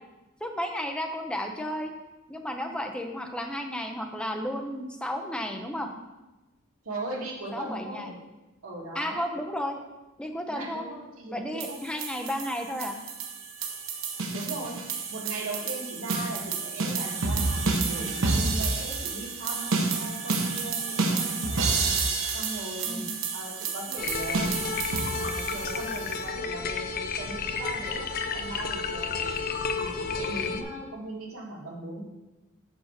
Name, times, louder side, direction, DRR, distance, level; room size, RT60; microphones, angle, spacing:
voice 1, 0.4-1.9 2.3-5.9 7.5-8.1 8.9-9.8 10.2-10.8 11.3-12.9 22.9-23.1, equal, 5° left, 3 dB, 0.7 m, -33 dB
voice 2, 6.8-8.2 8.6-9.4 10.5-12.1 14.3-14.8 15.1-21.8 22.3-22.9 23.3-24.6 25.1-29.4 29.8-32.0, right 2 dB, 90° right, -2 dB, 1.8 m, -38 dB
sound 1, 11.6-26.2, right 4 dB, 65° right, 1.0 m, -29 dB
sound 2, 24.0-30.6, left 5 dB, 45° left, 0.5 m, -32 dB
6.4 x 4.7 x 6.5 m, 1.1 s
head